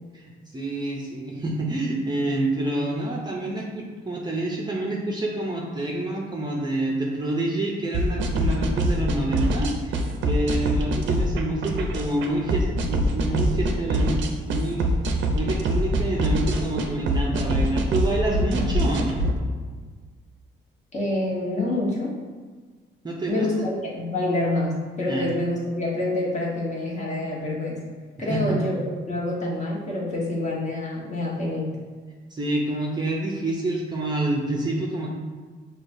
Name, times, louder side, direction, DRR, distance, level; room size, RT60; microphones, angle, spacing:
voice 1, 0.1-14.2 14.5-14.9 15.3-19.3 23.0-23.7 25.1-25.3 28.3-28.7 32.3-35.1, right 2 dB, 20° right, -2 dB, 0.5 m, -27 dB
sound 1, 7.9-19.3, right 1 dB, 70° right, 0.5 m, -24 dB
voice 2, 20.9-22.1 23.3-27.8 28.2-31.7, left 2 dB, 35° left, -5 dB, 1.2 m, -27 dB
5.9 x 2.2 x 2.6 m, 1.5 s
cardioid pair, 90°, 20 cm